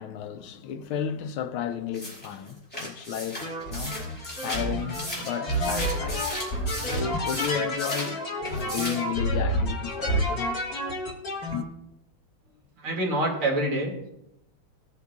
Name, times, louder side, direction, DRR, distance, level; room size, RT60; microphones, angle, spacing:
voice 1, 0.0-3.4 3.7-4.0 4.4-6.3 6.7-10.5 11.5-11.7, left 8 dB, 85° left, 1.6 m, -33 dB
sound 1, 1.9-8.2 8.4-9.1, equal, 5° left, 4.3 m, -36 dB
sound 2, 3.4-11.6, equal, 45° left, 2.2 m, -29 dB
voice 2, 12.8-14.1, right 1 dB, 80° right, 3.3 m, -26 dB
18.5 x 8.3 x 2.4 m
omnidirectional pair, 2.3 m